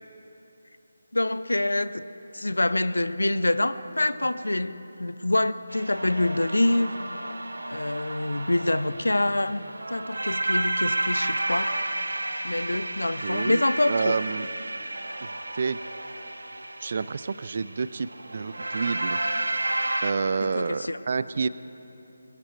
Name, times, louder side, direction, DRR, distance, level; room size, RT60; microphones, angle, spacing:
voice 1, 1.1-2.0 2.3-6.9 7.7-9.6 9.9-11.7 12.4-14.1 20.6-21.0, left 1 dB, 75° left, 13 dB, 0.6 m, -26 dB
sound 1, 5.7-20.1, right 2 dB, 70° right, 0.9 m, -31 dB
voice 2, 13.2-13.6 13.9-14.5 15.2-15.8 16.8-19.2 20.0-21.5, right 5 dB, 45° right, 15 dB, 0.4 m, -29 dB
21.0 x 12.5 x 4.5 m, 3.0 s
figure-of-eight pair, 155°, 0 cm